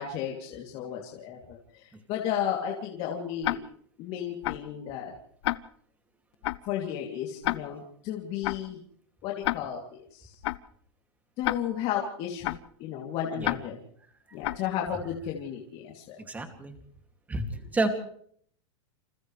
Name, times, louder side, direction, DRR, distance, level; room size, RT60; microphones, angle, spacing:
voice 1, 0.0-3.6 4.0-5.1 6.7-8.8 9.2-10.4 11.4-13.8 14.3-16.2, left 9 dB, 35° left, -1 dB, 3.0 m, -33 dB
Tick-tock, 3.4-3.6 4.4-4.6 5.4-5.6 6.4-6.6 7.4-7.6 8.4-8.6 9.4-9.6 10.4-10.6 11.4-11.6 12.4-12.6 13.4-13.6 14.4-14.6, left 17 dB, 60° left, 0.8 m, -28 dB
voice 2, 16.2-16.8 17.3-17.5 17.7-18.0, right 2 dB, 10° right, 5 dB, 2.4 m, -30 dB
28.5 x 27.5 x 3.3 m, 0.64 s
supercardioid pair, 155°, 16 cm